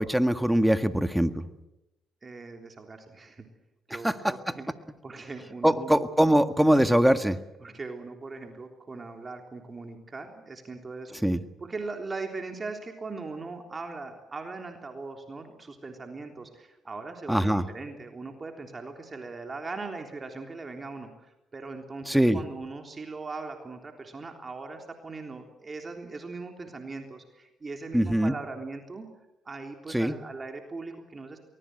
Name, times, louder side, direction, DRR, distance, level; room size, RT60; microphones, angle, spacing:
voice 1, 0.0-1.4 4.0-4.3 5.6-7.4 11.2-11.4 17.3-17.6 22.1-22.4 27.9-28.3 29.9-30.2, equal, 5° right, 10 dB, 1.8 m, -22 dB
voice 2, 2.2-3.5 3.9-4.7 5.0-6.0 7.6-11.2 11.6-29.1 29.5-31.4, right 3 dB, 35° right, 4 dB, 3.5 m, -40 dB
23.5 x 20.0 x 8.0 m, 0.94 s
supercardioid pair, 70°, 0 cm